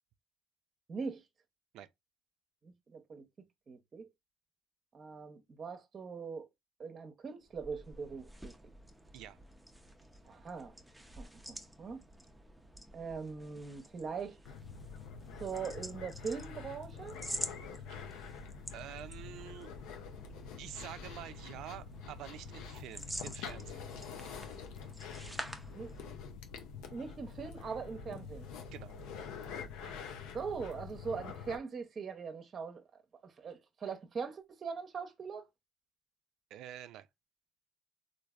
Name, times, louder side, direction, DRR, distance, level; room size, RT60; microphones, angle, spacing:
voice 1, 0.9-1.2 2.6-3.2 3.7-4.1 4.9-6.5 6.8-8.5 10.3-10.7 11.1-12.0 12.9-14.4 15.4-17.2 25.7-25.9 26.9-28.5 29.8-32.8 33.2-35.5, right 5 dB, 40° right, 0.7 m, -41 dB
sound 1, 7.4-26.3, right 1 dB, 5° right, 0.6 m, -49 dB
sound 2, 14.4-31.6, left 6 dB, 85° left, 0.5 m, -46 dB
voice 2, 18.7-19.7 20.6-23.9 28.7-29.0 36.5-37.1, right 11 dB, 75° right, 0.3 m, -47 dB
3.2 x 2.5 x 2.3 m
supercardioid pair, 85°, 0 cm